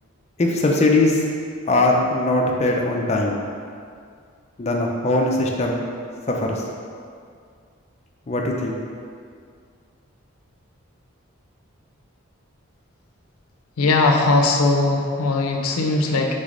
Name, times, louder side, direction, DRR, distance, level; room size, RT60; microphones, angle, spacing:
voice 1, 0.4-1.2 1.7-3.4 4.6-5.8 6.3-6.6 8.3-8.8, left 2 dB, 30° left, 0 dB, 0.4 m, -20 dB
voice 2, 13.8-16.4, left 3 dB, 90° left, 3 dB, 0.5 m, -19 dB
3.9 x 3.2 x 3.7 m, 2.2 s
head